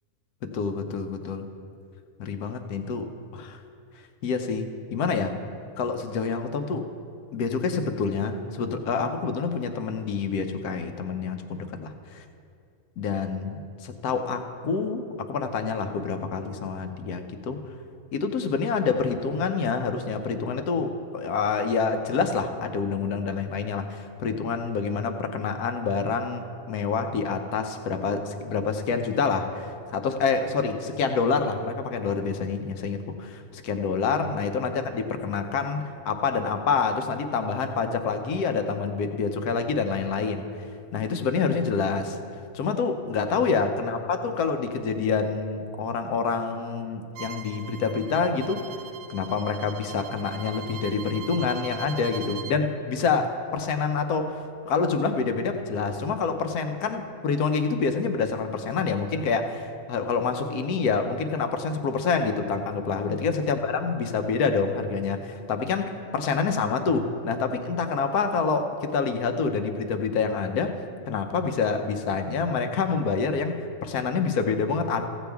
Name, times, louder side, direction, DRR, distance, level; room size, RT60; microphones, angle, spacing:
voice 1, 0.4-1.5 2.2-3.6 4.2-5.4 5.8-6.9 7.3-12.2 13.0-17.6 18.1-40.5 40.9-42.2 42.5-48.6 49.1-70.8 71.1-75.1, left 5 dB, 85° left, 7 dB, 1.2 m, -27 dB
Bowed string instrument, 47.1-52.6, right 7 dB, 80° right, 1.1 m, -41 dB
15.5 x 8.0 x 3.5 m, 2.5 s
omnidirectional pair, 1.6 m